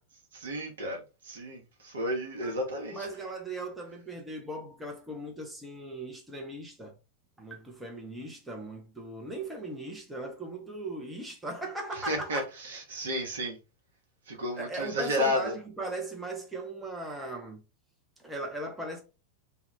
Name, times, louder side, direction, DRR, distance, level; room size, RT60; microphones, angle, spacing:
voice 1, 0.3-3.1 11.9-13.6 14.3-15.5, equal, 65° right, 0.8 m, -32 dB
voice 2, 2.9-6.9 7.4-12.4 14.6-17.6 18.2-19.0, right 1 dB, 10° right, 0.6 m, -38 dB
2.2 x 2.1 x 3.1 m
figure-of-eight pair, 90°, 0 cm